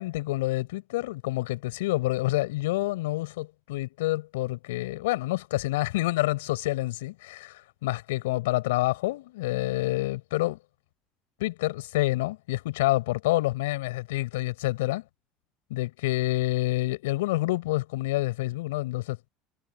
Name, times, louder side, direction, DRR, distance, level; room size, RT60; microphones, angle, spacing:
voice 1, 0.0-10.6 11.4-15.0 15.7-19.3, left 18 dB, 85° left, 5.3 m, -28 dB
supercardioid pair, 90°, 0 cm